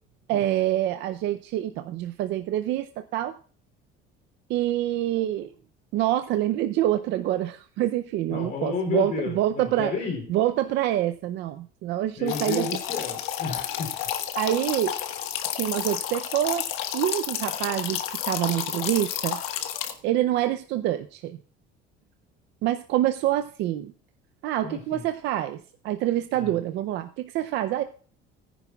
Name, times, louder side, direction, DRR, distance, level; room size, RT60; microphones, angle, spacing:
voice 1, 0.3-3.3 4.5-5.5 5.9-9.9 10.3-12.7 14.4-14.9 15.5-16.7 16.9-19.4 20.0-21.4 22.6-23.9 24.4-27.8, right 13 dB, 60° right, 9 dB, 0.5 m, -26 dB
voice 2, 8.3-10.2 12.2-13.9 24.6-25.0 26.3-26.6, left 4 dB, 45° left, 2 dB, 3.0 m, -31 dB
sound 1, 12.3-19.9, left 11 dB, 75° left, 1.4 m, -31 dB
18.5 x 10.0 x 2.3 m, 0.41 s
cardioid pair, 175°, 21 cm